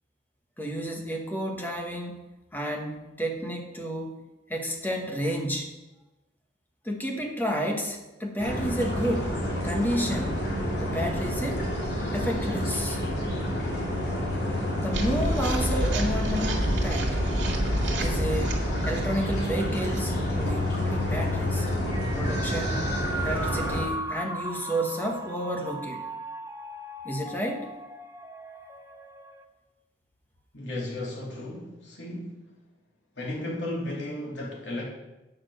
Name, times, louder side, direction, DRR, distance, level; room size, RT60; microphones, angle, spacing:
voice 1, 0.6-2.2 2.5-4.1 4.5-5.7 6.8-9.4 9.6-10.4 10.8-11.6 12.1-13.0 14.6-17.2 17.9-18.5 18.8-21.7 22.2-22.8 23.2-26.0 27.0-27.7, equal, 10° left, 1 dB, 1.3 m, -31 dB
sound 1, 8.4-23.8, equal, 60° left, 3.1 m, -29 dB
sound 2, 14.9-21.1, right 1 dB, 90° right, 2.0 m, -29 dB
sound 3, 21.9-29.4, right 1 dB, 15° right, 0.6 m, -37 dB
voice 2, 30.5-32.4 33.2-34.8, left 1 dB, 80° left, -3 dB, 2.8 m, -34 dB
8.7 x 6.6 x 6.5 m, 1.0 s
head